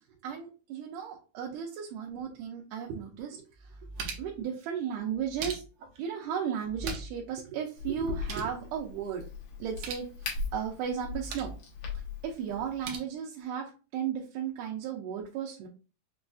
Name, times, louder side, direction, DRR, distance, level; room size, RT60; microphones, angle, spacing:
voice 1, 0.2-3.8 4.2-5.6 6.0-9.3 9.6-11.5 12.2-15.7, right 8 dB, 90° right, -1 dB, 2.2 m, -35 dB
sound 1, 3.0-3.1 3.5-4.4 5.1-6.0 6.6-7.3 7.5-7.6 8.0-8.6 9.6-10.1 11.0-11.6 12.5-13.0, right 4 dB, 70° right, 1.6 m, -41 dB
Crack, 7.8-12.8, left 4 dB, 80° left, 2.5 m, -39 dB
6.1 x 2.5 x 2.3 m, 0.34 s
omnidirectional pair, 3.5 m